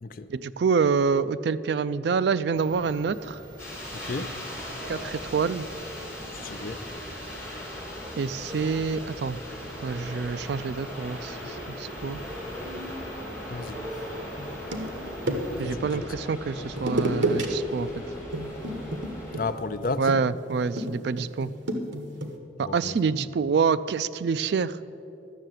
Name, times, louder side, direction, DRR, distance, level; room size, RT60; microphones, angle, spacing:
voice 1, 0.3-3.4 4.9-5.7 8.2-9.4 9.8-12.2 15.6-17.9 20.0-21.5 22.6-24.8, right 5 dB, 65° right, 0.3 m, -27 dB
sound 1, 2.5-15.6, equal, 20° right, 1.8 m, -44 dB
sound 2, 3.6-19.4, left 1 dB, 15° left, 3.5 m, -39 dB
voice 2, 3.9-4.3 6.3-6.8 13.5-13.8 15.5-16.1 16.6-16.7 19.4-20.1 22.6-23.0, left 3 dB, 50° left, 0.5 m, -33 dB
sound 3, 14.4-15.8 16.8-17.5 17.8-18.0 18.3-22.4, right 1 dB, 85° right, 1.3 m, -31 dB
12.5 x 6.6 x 9.1 m
head